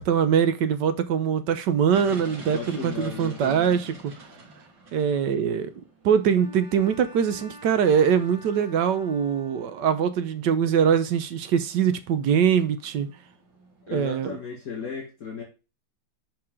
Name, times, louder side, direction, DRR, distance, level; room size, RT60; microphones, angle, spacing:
voice 1, 0.0-4.1 4.9-5.7 6.0-13.1 13.9-14.4, right 7 dB, 70° right, 1.4 m, -23 dB
sound 1, 1.9-14.1, right 2 dB, 90° right, 2.6 m, -48 dB
voice 2, 2.5-3.8 13.9-15.4, left 6 dB, 50° left, 2.4 m, -35 dB
Bowed string instrument, 6.4-10.1, equal, 15° left, 1.4 m, -47 dB
6.5 x 5.8 x 3.6 m
omnidirectional pair, 2.0 m